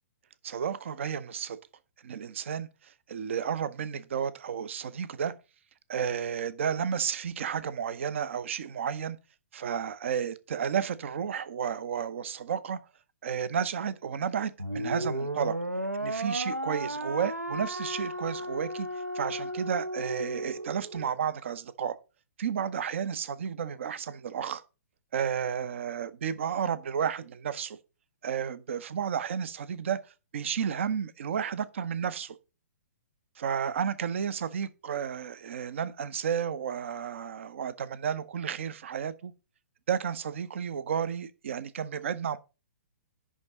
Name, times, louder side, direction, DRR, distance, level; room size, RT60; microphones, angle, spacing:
voice 1, 0.4-1.6 2.0-5.3 5.9-9.2 9.5-12.8 13.2-15.6 16.0-18.9 19.1-22.0 22.4-24.6 25.1-27.8 28.2-30.0 30.3-32.3 33.4-39.3 39.9-42.4, right 7 dB, 50° right, 0.7 m, -32 dB
sound 1, 14.6-21.1, right 1 dB, 85° right, 0.9 m, -34 dB
10.5 x 3.7 x 5.3 m
figure-of-eight pair, 120°, 8 cm